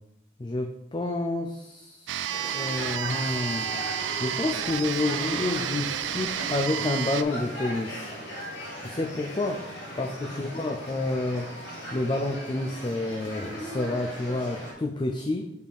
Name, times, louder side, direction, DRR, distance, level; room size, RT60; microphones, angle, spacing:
voice 1, 0.4-3.7 4.2-8.1 8.8-9.6 10.0-11.5 11.9-15.5, left 2 dB, 25° left, 4 dB, 0.4 m, -29 dB
sound 1, 2.1-7.2, right 10 dB, 85° right, 0.3 m, -31 dB
sound 2, 2.3-14.7, equal, 90° left, 2.2 m, -38 dB
5.5 x 4.3 x 4.8 m, 0.85 s
head